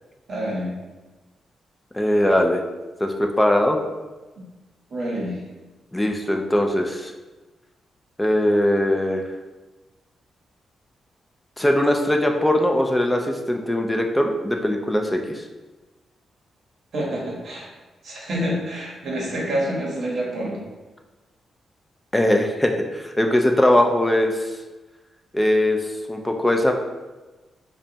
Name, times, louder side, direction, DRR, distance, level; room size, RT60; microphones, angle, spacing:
voice 1, 0.3-0.7 4.9-5.4 16.9-17.7 18.0-20.6, equal, 55° right, -3 dB, 0.8 m, -27 dB
voice 2, 1.9-2.6 3.0-3.8 5.9-7.1 8.2-9.3 11.6-15.4 22.1-24.5 25.3-26.7, left 1 dB, 10° left, 3 dB, 0.3 m, -20 dB
3.9 x 2.2 x 2.6 m, 1.2 s
wide cardioid pair, 145°, 0 cm